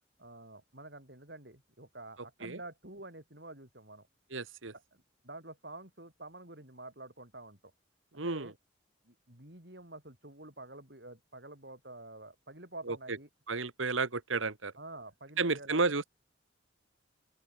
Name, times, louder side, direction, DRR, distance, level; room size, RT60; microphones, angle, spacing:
voice 1, 0.2-4.1 4.7-7.6 8.1-8.5 9.0-13.3 14.8-15.8, right 2 dB, 55° right, 5.1 m, -49 dB
voice 2, 4.3-4.7 8.1-8.5 12.9-13.0 13.5-14.7 15.4-16.1, right 4 dB, 85° right, 1.7 m, -32 dB
open air
head